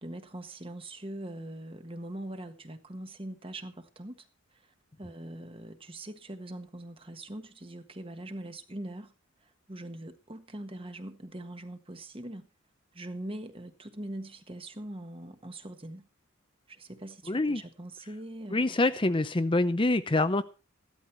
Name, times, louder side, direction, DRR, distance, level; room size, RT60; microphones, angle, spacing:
voice 1, 0.0-4.3 4.5-9.1 9.4-12.5 12.9-16.1 16.7-18.8, right 1 dB, 25° right, 1.5 m, -42 dB
voice 2, 17.3-17.6 18.5-20.4, left 2 dB, 25° left, 0.7 m, -25 dB
15.5 x 12.5 x 4.5 m
head